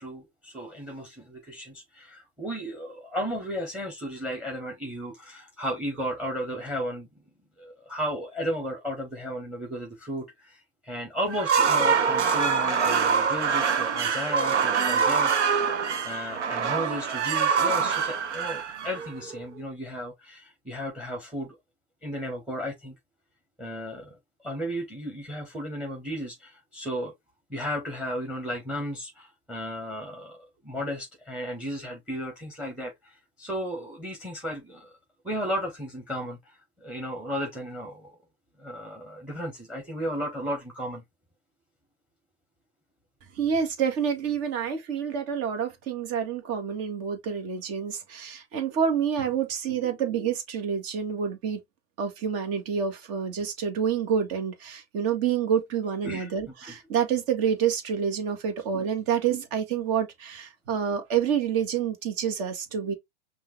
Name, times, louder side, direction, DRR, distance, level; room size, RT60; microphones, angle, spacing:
voice 1, 0.0-7.1 7.6-21.6 22.0-22.9 23.6-24.1 24.4-27.1 27.5-30.4 30.6-34.9 35.2-38.1 38.6-41.0 56.0-56.3 56.6-56.7, equal, 5° right, 1.6 m, -34 dB
sound 1, 11.3-19.4, right 6 dB, 90° right, 0.9 m, -25 dB
voice 2, 43.3-51.6 52.0-62.9, right 7 dB, 45° right, 1.8 m, -28 dB
5.6 x 2.8 x 3.3 m
hypercardioid pair, 105°, 34 cm